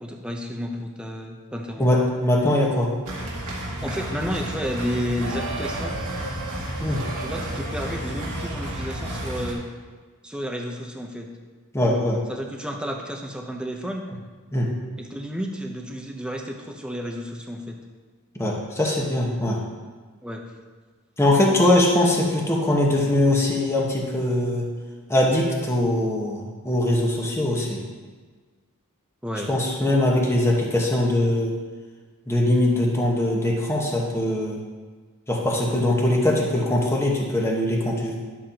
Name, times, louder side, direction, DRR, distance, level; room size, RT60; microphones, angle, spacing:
voice 1, 0.0-1.9 3.8-6.0 7.2-9.7 10.2-11.3 12.3-14.0 15.0-17.8 20.2-20.4 29.2-29.5, equal, 5° right, 2 dB, 0.7 m, -31 dB
voice 2, 1.8-2.9 6.8-7.0 11.7-12.2 14.5-14.7 18.4-19.6 21.2-24.6 25.1-27.8 29.5-31.5 32.3-34.6 35.3-38.1, left 1 dB, 10° left, -2 dB, 1.2 m, -21 dB
sound 1, 3.0-9.5, right 1 dB, 85° right, 1.9 m, -31 dB
11.0 x 7.6 x 2.9 m, 1.4 s
head